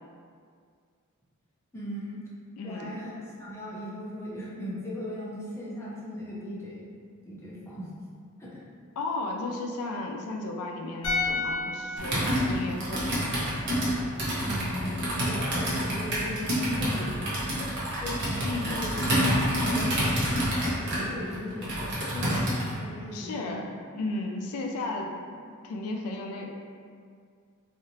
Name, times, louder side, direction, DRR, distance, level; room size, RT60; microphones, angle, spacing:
voice 1, 1.7-2.2 2.6-6.9 7.3-7.9 8.4-8.6 14.4-14.9 15.2-17.5 18.0-19.0 19.3-20.0 20.7-21.9 22.1-23.7, left 1 dB, 10° left, -6 dB, 0.5 m, -38 dB
voice 2, 2.6-2.9 9.0-13.3 16.8-17.1 18.4-18.8 23.1-25.4 25.6-26.6, left 2 dB, 85° left, 2 dB, 0.3 m, -34 dB
sound 1, 11.0-14.3 14.5-14.7, left 3 dB, 65° left, 0.7 m, -34 dB
Computer keyboard, 12.0-22.7, equal, 55° right, 0.7 m, -28 dB
2.9 x 2.4 x 2.6 m, 2.1 s
head